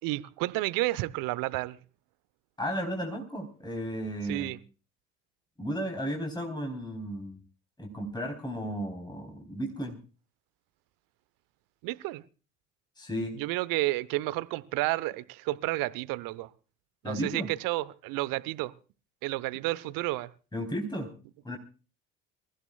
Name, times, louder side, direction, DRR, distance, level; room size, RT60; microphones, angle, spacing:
voice 1, 0.0-1.8 4.3-4.6 11.8-12.2 13.3-16.5 17.0-18.7 19.2-20.3, right 19 dB, 55° right, 1.0 m, -31 dB
voice 2, 2.6-4.5 5.6-7.4 7.8-10.0 13.0-13.4 17.0-17.5 20.5-21.1 21.4-21.6, equal, 10° left, 3.9 m, -34 dB
26.5 x 15.5 x 2.3 m
figure-of-eight pair, 60°, 40 cm